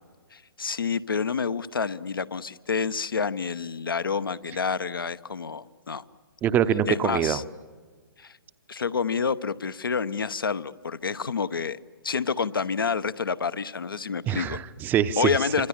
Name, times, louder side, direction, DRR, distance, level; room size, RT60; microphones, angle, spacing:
voice 1, 0.3-6.0 6.9-7.4 8.2-8.4 8.7-11.8 12.0-14.6 15.2-15.7, left 5 dB, 65° left, 14 dB, 1.0 m, -28 dB
voice 2, 6.4-7.4 14.3-15.3, right 9 dB, 15° right, 14 dB, 0.8 m, -24 dB
27.5 x 25.5 x 7.3 m, 1.5 s
figure-of-eight pair, 125°, 12 cm